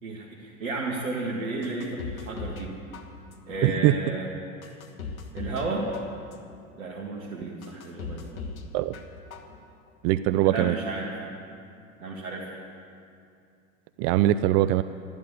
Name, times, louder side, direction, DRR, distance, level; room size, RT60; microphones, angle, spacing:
voice 1, 0.0-2.7 3.5-4.3 5.3-5.9 6.8-8.3 10.4-11.1 12.0-12.5, right 2 dB, 75° right, -3 dB, 2.1 m, -32 dB
sound 1, 1.6-2.7 2.9-3.6 4.1-4.2 4.6-5.7 5.9-6.6 7.1-7.2 7.6-8.6 8.9-9.6 9.9-10.0, left 5 dB, 80° left, 1.5 m, -38 dB
voice 2, 3.6-3.9 8.7-9.0 10.0-10.7 14.0-14.8, right 14 dB, 40° right, 14 dB, 0.4 m, -22 dB
13.0 x 12.0 x 8.4 m, 2.5 s
hypercardioid pair, 90°, 41 cm